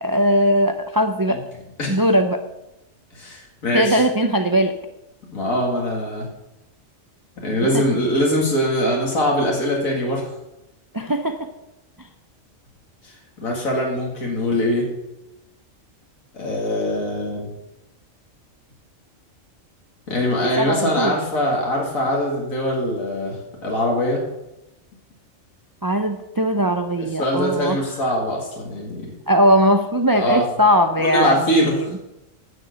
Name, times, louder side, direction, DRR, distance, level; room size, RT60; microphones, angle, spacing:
voice 1, 0.0-1.4 1.9-2.4 3.7-4.8 7.7-7.8 10.9-11.5 20.6-21.1 25.8-27.8 29.3-31.7, equal, 25° right, 7 dB, 0.4 m, -19 dB
voice 2, 3.1-4.0 5.3-6.3 7.4-10.2 13.0-14.9 16.3-17.5 20.1-24.2 27.2-29.1 30.1-30.4 31.0-31.9, equal, 85° left, -2 dB, 2.7 m, -22 dB
10.5 x 6.7 x 8.1 m, 0.94 s
omnidirectional pair, 1.4 m